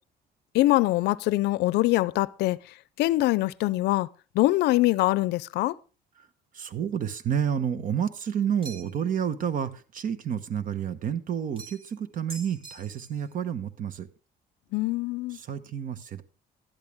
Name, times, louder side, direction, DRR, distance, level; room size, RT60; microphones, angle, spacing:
voice 1, 0.5-2.6 3.0-4.1 4.4-5.7 14.7-15.4, left 18 dB, 80° left, 0.5 m, -23 dB
voice 2, 6.5-14.1 15.3-16.2, right 8 dB, 55° right, 1.0 m, -30 dB
sound 1, 8.6-9.1 11.6-11.9 12.3-13.3, right 4 dB, 30° right, 2.3 m, -44 dB
12.0 x 10.5 x 3.5 m
cardioid pair, 110°, 17 cm